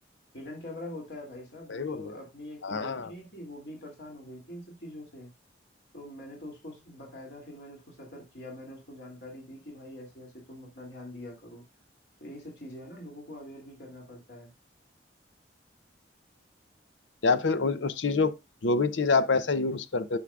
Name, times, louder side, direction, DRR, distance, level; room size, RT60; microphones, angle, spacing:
voice 1, 0.3-5.3 5.9-11.6 12.2-14.5, left 1 dB, 60° left, 2.9 m, -44 dB
voice 2, 1.7-2.0 2.6-3.1 17.2-18.3 18.6-20.2, left 4 dB, 85° left, 0.7 m, -26 dB
10.5 x 6.2 x 2.5 m
head